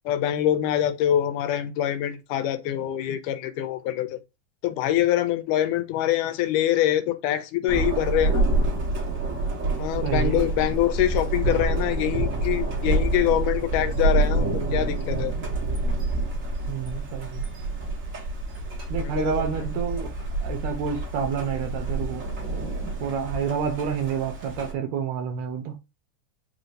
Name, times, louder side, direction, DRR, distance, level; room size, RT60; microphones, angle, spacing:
voice 1, 0.1-4.2 4.6-8.5 9.8-15.3 19.0-19.3, left 12 dB, 90° left, 2.2 m, -25 dB
Thunder, 7.7-24.7, right 2 dB, 55° right, 0.8 m, -27 dB
voice 2, 10.0-10.5 16.7-17.4 18.9-20.1 20.4-22.6 23.0-25.8, right 7 dB, 75° right, 1.8 m, -29 dB
4.9 x 2.6 x 3.2 m
omnidirectional pair, 3.6 m